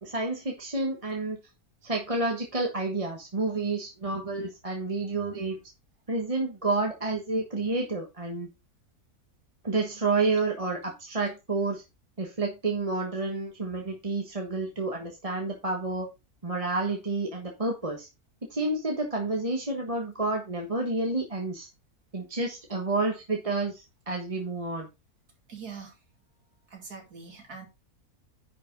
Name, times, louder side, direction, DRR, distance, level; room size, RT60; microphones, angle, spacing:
voice 1, 0.0-1.4 1.8-5.6 6.1-8.5 9.6-11.8 12.2-16.1 16.4-18.1 18.5-21.7 22.1-24.9, right 3 dB, 25° right, 2 dB, 1.3 m, -29 dB
voice 2, 25.5-26.0 26.7-27.7, right 5 dB, 85° right, 3 dB, 3.0 m, -43 dB
10.0 x 5.2 x 3.8 m, 0.25 s
omnidirectional pair, 1.6 m